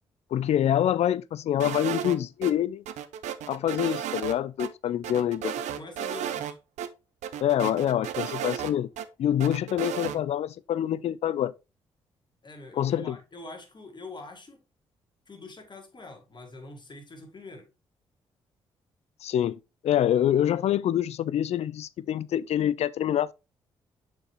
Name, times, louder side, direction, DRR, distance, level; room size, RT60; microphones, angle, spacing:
voice 1, 0.3-2.8 3.5-5.5 7.4-8.9 9.2-11.5 12.8-13.2 19.2-19.6 19.8-23.3, left 11 dB, 60° left, 0.4 m, -26 dB
sound 1, 1.6-2.5 2.9-4.3 4.6-4.7 5.0-6.5 6.8-6.9 7.2-9.1 9.4-10.2, right 9 dB, 70° right, 0.6 m, -33 dB
voice 2, 5.6-6.6 12.4-14.6 15.3-17.7, left 2 dB, 40° left, 2.2 m, -44 dB
6.3 x 4.9 x 3.2 m
hypercardioid pair, 45°, 12 cm